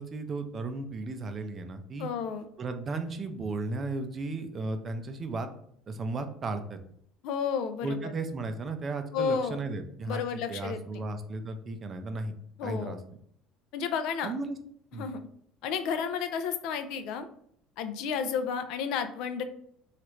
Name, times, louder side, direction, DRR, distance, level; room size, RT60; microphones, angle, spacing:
voice 1, 0.0-2.1 2.6-5.5 5.9-6.8 7.8-10.2 10.5-12.3 12.6-13.0 14.2-14.6 14.9-15.1, right 3 dB, 35° right, 8 dB, 0.4 m, -35 dB
voice 2, 2.0-2.5 7.2-8.1 9.1-9.6 10.1-11.0 12.6-13.0 13.7-14.3 14.9-15.3 15.6-17.3 17.8-19.4, left 6 dB, 70° left, 9 dB, 0.4 m, -32 dB
3.1 x 2.4 x 3.0 m, 0.68 s
supercardioid pair, 85°, 0 cm